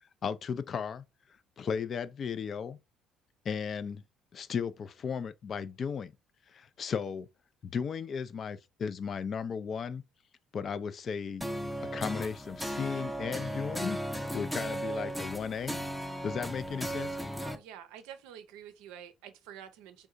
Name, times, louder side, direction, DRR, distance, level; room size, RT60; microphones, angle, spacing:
voice 1, 0.2-1.0 1.6-2.8 3.4-4.0 4.3-6.1 6.5-7.3 7.6-10.0 10.5-11.4 11.9-14.0 14.3-15.8 16.2-17.2, left 6 dB, 45° left, 0.3 m, -35 dB
sound 1, 11.4-17.6, equal, 5° left, 0.6 m, -36 dB
voice 2, 17.4-20.1, right 9 dB, 70° right, 0.5 m, -48 dB
3.5 x 2.7 x 2.4 m
hypercardioid pair, 55°, 0 cm